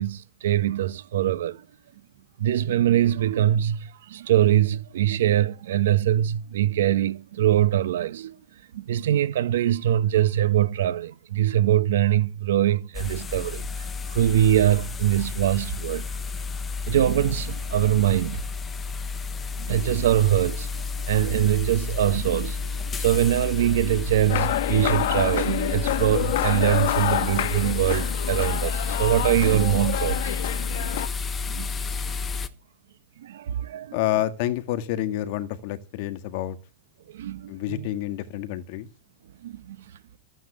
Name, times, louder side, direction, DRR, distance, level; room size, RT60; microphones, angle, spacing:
voice 1, 0.0-1.6 2.4-8.4 8.7-16.1 16.9-18.5 19.6-30.4 30.6-30.7 31.5-31.7 32.1-32.2 33.2-34.0 37.1-37.9 39.4-39.8, right 12 dB, 80° right, 1.3 m, -23 dB
sound 1, 12.9-32.5, left 4 dB, 15° left, 1.1 m, -31 dB
sound 2, 24.3-31.1, left 13 dB, 65° left, 1.6 m, -28 dB
voice 2, 33.9-36.6 37.5-38.9, left 13 dB, 50° left, 1.8 m, -28 dB
14.5 x 9.2 x 7.9 m
supercardioid pair, 160°, 0 cm